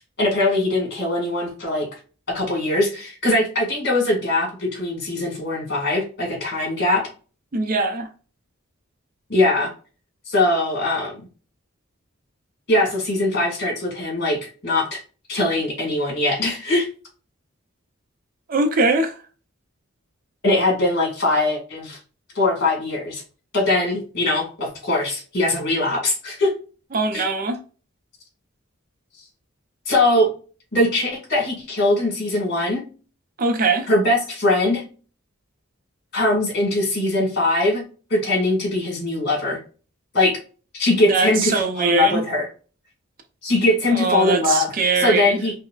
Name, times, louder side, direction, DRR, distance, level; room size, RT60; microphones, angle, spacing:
voice 1, 0.0-1.9 2.3-7.1 9.3-9.7 10.3-11.1 12.7-15.0 15.3-16.9 20.4-22.0 22.3-23.2 23.5-26.5 27.1-27.2 29.9-30.3 30.7-32.8 33.9-34.8 36.1-37.8 38.1-39.6 40.1-40.4 40.7-42.5 43.4-45.5, left 2 dB, 50° left, 1.7 m, -21 dB
voice 2, 7.5-8.1 18.5-19.2 26.9-27.6 33.4-33.9 41.1-42.2 43.9-45.4, right 3 dB, 40° right, 0.5 m, -21 dB
5.3 x 2.1 x 2.3 m
head